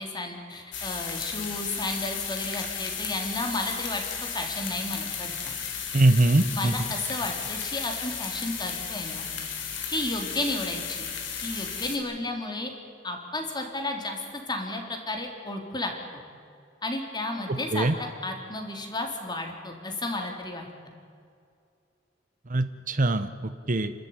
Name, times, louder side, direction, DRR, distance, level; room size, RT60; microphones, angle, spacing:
voice 1, 0.0-4.0 4.3-5.6 6.5-9.3 9.9-11.1 11.4-12.7 13.0-15.9 16.8-20.7, left 2 dB, 25° left, 3 dB, 3.9 m, -32 dB
sound 1, 0.7-12.0, left 7 dB, 75° left, 4.0 m, -34 dB
voice 2, 5.9-6.7 17.5-17.9 22.5-23.9, right 2 dB, 45° right, 11 dB, 1.0 m, -23 dB
30.0 x 13.5 x 9.8 m, 2.4 s
head